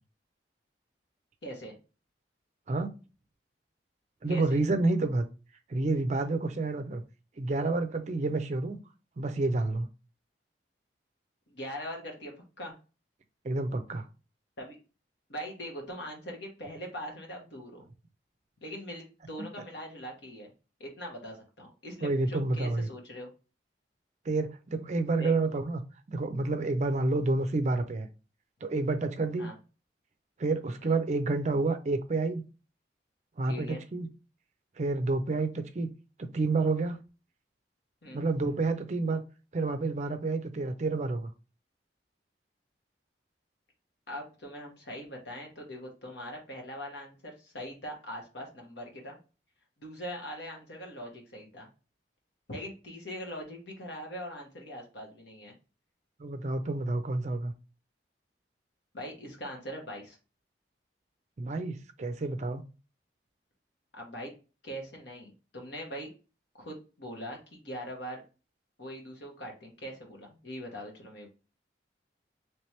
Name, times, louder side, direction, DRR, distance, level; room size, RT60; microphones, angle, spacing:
voice 1, 1.4-1.8 4.3-4.6 11.5-12.8 14.6-14.8 15.3-17.9 18.6-20.5 20.8-23.3 25.2-25.3 29.4-29.5 30.8-31.0 33.5-33.8 38.0-38.2 44.1-49.2 49.8-51.7 52.5-55.5 58.9-60.2 63.9-64.3 64.6-66.1 66.6-68.2 68.8-71.3, equal, 75° left, 1.3 m, -41 dB
voice 2, 4.2-5.3 5.7-7.0 7.4-8.8 9.2-9.9 13.4-14.0 22.0-22.9 24.3-25.8 26.1-28.1 28.6-29.5 30.4-32.4 33.4-34.1 34.8-35.9 36.2-37.0 38.1-39.2 39.5-41.3 56.2-57.5 61.4-62.6, right 3 dB, 40° right, 0.4 m, -29 dB
3.2 x 2.9 x 3.1 m
head